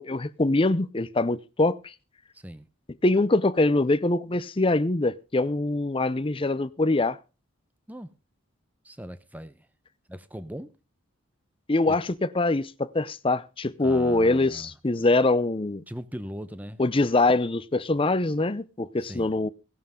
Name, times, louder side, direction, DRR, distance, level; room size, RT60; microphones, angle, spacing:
voice 1, 0.0-1.9 3.0-7.2 11.7-15.8 16.8-19.5, left 2 dB, 25° left, 0.6 m, -24 dB
voice 2, 2.3-2.6 7.9-8.1 8.8-9.7 10.1-10.7 11.9-12.0 13.8-14.7 15.9-16.8 19.0-19.3, equal, 10° right, 0.8 m, -39 dB
16.5 x 11.0 x 3.7 m
head